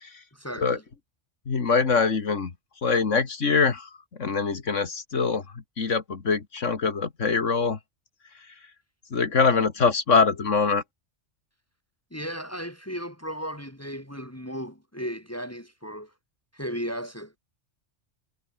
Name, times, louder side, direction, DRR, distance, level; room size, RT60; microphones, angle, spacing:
voice 1, 0.3-0.8 12.1-16.1 16.5-17.4, equal, 10° left, 2.9 m, -35 dB
voice 2, 1.5-2.5 2.8-3.9 4.2-5.4 5.8-7.8 9.1-10.8, left 5 dB, 80° left, 2.2 m, -23 dB
omnidirectional pair, 1.3 m